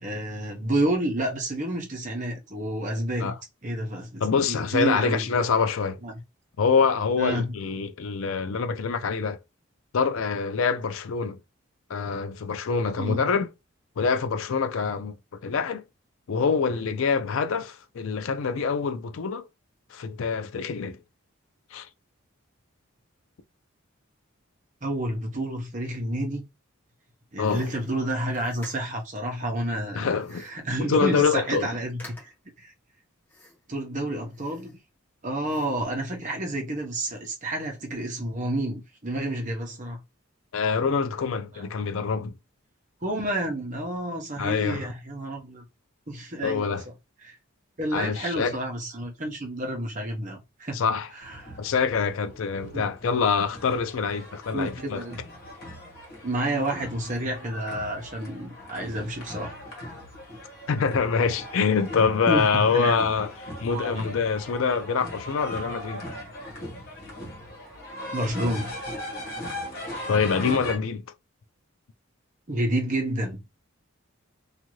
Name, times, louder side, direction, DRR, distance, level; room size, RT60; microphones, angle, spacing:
voice 1, 0.0-3.3 3.6-5.3 6.0-6.2 7.2-7.5 13.0-13.2 24.8-26.4 27.3-32.3 32.6-32.7 33.7-34.8 35.2-40.0 41.5-41.7 43.0-45.6 46.1-46.8 47.2-47.3 47.8-50.8 51.1-51.5 52.7-52.9 54.5-55.2 56.2-59.5 62.3-62.4 62.7-63.0 63.7-64.0 68.1-68.7 72.5-73.4, right 1 dB, 35° right, 0.8 m, -30 dB
voice 2, 4.2-6.0 6.6-9.4 9.9-11.4 11.9-13.5 14.0-15.2 15.4-15.8 16.3-19.5 19.9-21.0 21.7-21.9 27.4-27.7 29.9-30.4 30.8-31.7 40.5-42.3 44.4-44.9 46.4-46.8 47.9-48.6 50.7-51.1 51.6-55.0 60.7-66.0 70.1-71.0, left 5 dB, 70° left, 0.4 m, -25 dB
sound 1, 27.4-29.1 30.2-30.7 31.1-31.2 31.4-31.7 32.0-32.5 33.3-33.8 34.2-35.1 35.4-35.9, left 1 dB, 10° left, 1.0 m, -50 dB
sound 2, 51.2-70.8, left 1 dB, 45° left, 1.2 m, -39 dB
2.7 x 2.4 x 3.0 m
head